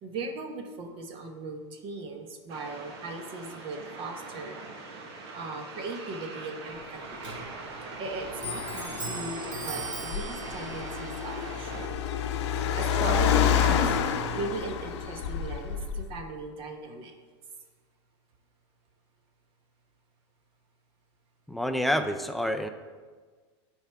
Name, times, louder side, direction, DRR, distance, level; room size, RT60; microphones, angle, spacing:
voice 1, 0.0-4.6 5.3-7.2 8.0-12.0 12.7-14.0 14.3-17.1, right 3 dB, 35° right, 4 dB, 1.0 m, -38 dB
sound 1, 2.5-11.9, right 3 dB, 65° right, 1.3 m, -42 dB
Clock, 6.6-15.9, right 2 dB, 90° right, 2.0 m, -42 dB
Car, 8.3-16.2, left 8 dB, 70° left, 0.7 m, -28 dB
voice 2, 21.5-22.7, equal, ahead, 6 dB, 0.4 m, -28 dB
12.0 x 4.7 x 3.4 m, 1.5 s
supercardioid pair, 140°, 15 cm